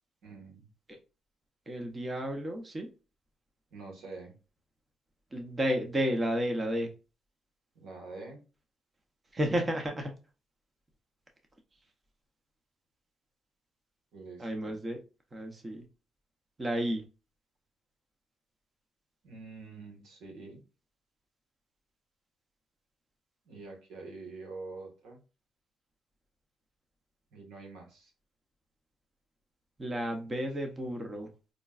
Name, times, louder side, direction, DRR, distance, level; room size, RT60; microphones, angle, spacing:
voice 1, 0.2-0.7 3.7-4.4 7.7-8.4 14.1-14.8 19.2-20.6 23.4-25.2 27.3-28.1 30.1-30.2 30.5-30.6, right 3 dB, 85° right, 2 dB, 1.3 m, -46 dB
voice 2, 1.7-2.9 5.3-6.9 9.3-10.1 14.4-15.0 15.3-15.8 16.6-17.0 29.8-31.3, equal, 25° right, 4 dB, 0.8 m, -32 dB
5.1 x 2.2 x 2.3 m, 0.32 s
cardioid pair, 90°, 0 cm